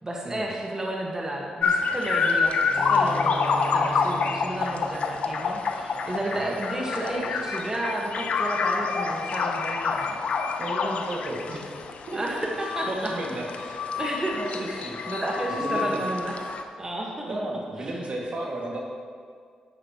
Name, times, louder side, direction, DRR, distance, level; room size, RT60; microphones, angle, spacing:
voice 1, 0.0-10.1 12.1-13.1 14.0-14.4 14.8-16.3 16.8-17.4 17.8-18.0, right 1 dB, 25° right, -2 dB, 1.4 m, -32 dB
sound 1, 1.6-16.6, left 5 dB, 65° left, 0.7 m, -28 dB
Bowed string instrument, 2.7-6.3, left 2 dB, 25° left, 0.4 m, -39 dB
voice 2, 10.6-11.7 12.1-12.5 12.9-13.5 14.3-14.9 15.6-16.1 17.3-18.8, right 1 dB, 60° right, -2 dB, 1.9 m, -33 dB
9.9 x 9.5 x 3.0 m, 2.1 s
cardioid pair, 60°, 2 cm